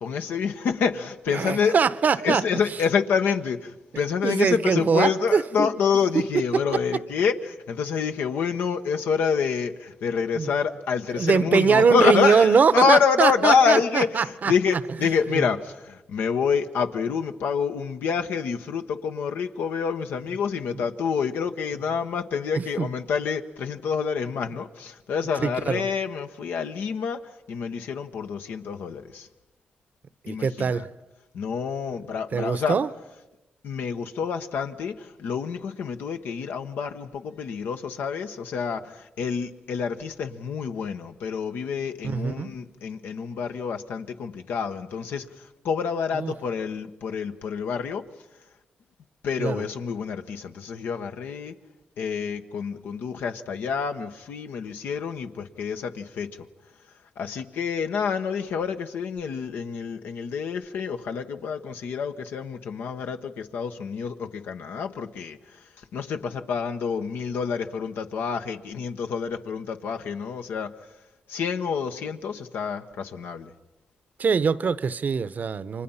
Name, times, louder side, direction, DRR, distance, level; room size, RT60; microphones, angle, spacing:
voice 1, 0.0-1.8 2.2-29.3 30.3-30.8 31.3-32.8 33.6-48.0 49.2-51.5 52.0-56.3 57.2-70.7 71.3-73.5, left 6 dB, 85° left, 1.2 m, -27 dB
voice 2, 1.3-2.4 4.2-5.7 6.5-6.6 10.3-10.5 11.2-14.5 15.3-15.4 22.5-22.9 25.4-25.9 30.2-30.9 32.3-32.9 42.0-42.5 46.1-46.3 49.4-49.6 74.2-75.8, right 5 dB, 55° right, 0.9 m, -22 dB
29.5 x 24.5 x 5.7 m
cardioid pair, 70°, 3 cm